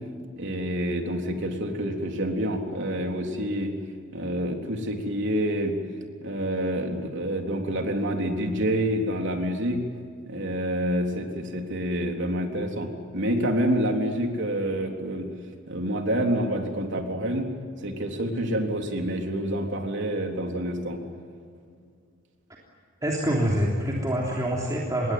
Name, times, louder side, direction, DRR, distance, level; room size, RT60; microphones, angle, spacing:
voice 1, 0.4-3.7 4.1-5.7 6.2-9.8 10.3-15.3 15.7-17.5 17.8-21.0, equal, 60° right, 3 dB, 3.7 m, -27 dB
voice 2, 23.0-25.1, equal, 15° right, -3 dB, 3.3 m, -25 dB
26.5 x 22.0 x 9.5 m, 2.3 s
head